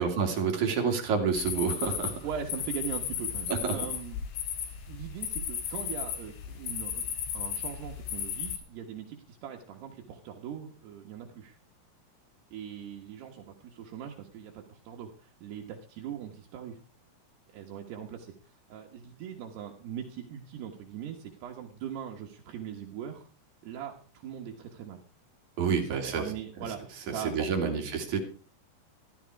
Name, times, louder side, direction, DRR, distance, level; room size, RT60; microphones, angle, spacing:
voice 1, 0.0-2.2 3.5-3.7 25.6-26.3 27.1-28.2, right 6 dB, 50° right, 3 dB, 3.3 m, -28 dB
sound 1, 1.3-8.6, left 8 dB, 90° left, 4.2 m, -35 dB
voice 2, 2.2-4.2 4.9-7.1 7.3-11.6 12.5-16.8 17.5-18.3 18.7-23.2 23.6-25.0 25.8-27.8, right 8 dB, 75° right, 1 dB, 3.3 m, -40 dB
14.5 x 13.0 x 4.7 m, 0.38 s
omnidirectional pair, 4.9 m